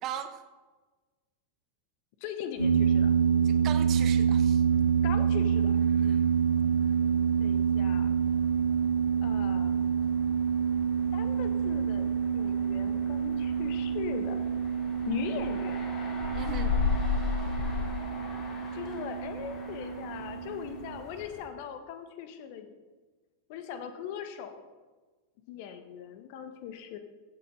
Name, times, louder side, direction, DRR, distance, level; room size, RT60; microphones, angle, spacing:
voice 1, 0.0-0.4 3.4-4.6 6.0-6.2 16.3-16.7, right 9 dB, 35° right, 10 dB, 0.9 m, -38 dB
voice 2, 2.2-3.1 5.0-5.8 7.4-8.1 9.2-9.7 11.1-14.5 15.0-16.0 18.7-22.8 23.5-24.7 25.5-27.0, left 8 dB, 45° left, 8 dB, 1.2 m, -40 dB
sound 1, 2.6-21.0, right 7 dB, 85° left, 1.7 m, -27 dB
sound 2, 2.6-21.5, left 5 dB, 25° left, 3.1 m, -38 dB
15.0 x 8.3 x 3.9 m, 1.3 s
figure-of-eight pair, 90°, 0 cm